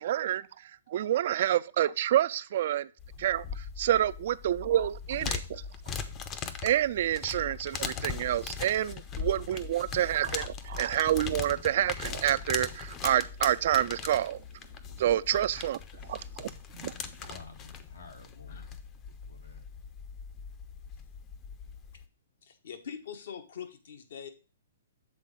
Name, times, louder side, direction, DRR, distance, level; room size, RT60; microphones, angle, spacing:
voice 1, 0.0-2.9 3.2-5.6 6.6-14.4 15.0-16.5 16.8-16.9, right 12 dB, 55° right, 0.3 m, -28 dB
sound 1, 3.0-22.1, left 6 dB, 25° left, 0.6 m, -40 dB
voice 2, 17.3-18.8 19.1-19.6, left 3 dB, 85° left, 1.8 m, -52 dB
voice 3, 22.4-24.3, left 7 dB, 65° left, 1.1 m, -44 dB
7.6 x 3.8 x 5.0 m
hypercardioid pair, 125°, 0 cm